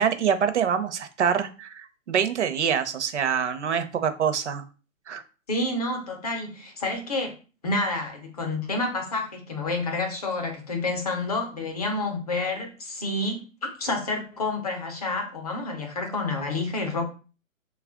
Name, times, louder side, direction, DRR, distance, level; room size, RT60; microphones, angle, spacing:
voice 1, 0.0-4.6 5.1-5.2, right 7 dB, 55° right, 9 dB, 0.7 m, -25 dB
voice 2, 5.5-7.4 7.6-17.0, left 2 dB, 30° left, 4 dB, 0.7 m, -29 dB
3.2 x 2.3 x 3.5 m, 0.34 s
hypercardioid pair, 165°, 41 cm